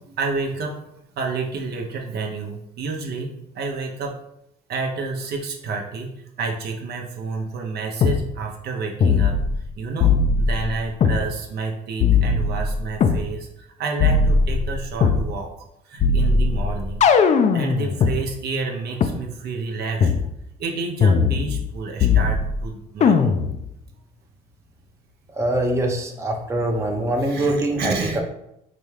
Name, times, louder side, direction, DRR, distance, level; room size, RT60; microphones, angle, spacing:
voice 1, 0.1-0.8 1.2-4.1 4.7-9.3 9.7-17.0 17.5-20.1 20.6-23.3 27.2-28.2, right 4 dB, 60° right, 1 dB, 0.7 m, -29 dB
sound 1, 8.0-8.2 9.0-9.7 10.0-11.2 12.0-13.2 14.0-15.2 16.0-18.2 19.0-19.1 20.0-20.2 21.0-21.7 22.0-22.6 23.0-23.6, left 5 dB, 40° left, 0.4 m, -19 dB
voice 2, 25.3-28.2, right 1 dB, 15° right, 1 dB, 0.6 m, -23 dB
4.0 x 2.3 x 3.2 m, 0.81 s
supercardioid pair, 75°, 19 cm